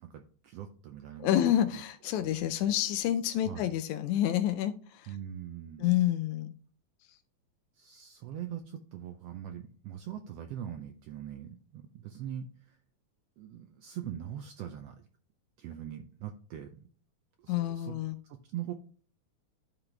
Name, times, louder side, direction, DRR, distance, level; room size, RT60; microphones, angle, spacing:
voice 1, 0.0-1.8 2.2-2.3 3.4-3.8 5.1-6.0 7.7-12.8 13.4-15.1 15.6-16.9 17.4-17.9 18.2-18.7, right 10 dB, 80° right, 7 dB, 1.4 m, -42 dB
voice 2, 1.2-5.1 5.8-6.5 17.5-18.2, left 12 dB, 85° left, 7 dB, 1.9 m, -28 dB
11.5 x 3.9 x 3.3 m, 0.43 s
omnidirectional pair, 3.3 m